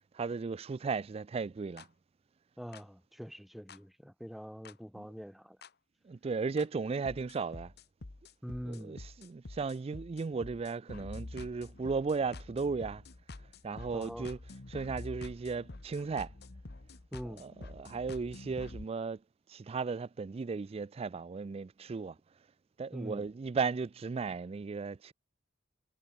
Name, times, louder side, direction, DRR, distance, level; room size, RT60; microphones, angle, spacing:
voice 1, 0.1-1.9 5.0-5.1 6.1-7.7 8.7-13.0 13.6-14.4 14.7-16.3 17.4-19.2 19.5-22.2 22.8-25.1, right 4 dB, 30° right, 0.3 m, -35 dB
sound 1, 1.8-1.9 2.7-2.8 3.7-3.8 4.7-4.8 5.6-5.7 6.6-6.7 7.1-18.9, left 2 dB, 60° left, 1.1 m, -47 dB
voice 2, 2.6-5.6 8.4-9.0 13.9-14.3 17.1-17.4 22.9-23.2, equal, ahead, 1.0 m, -44 dB
head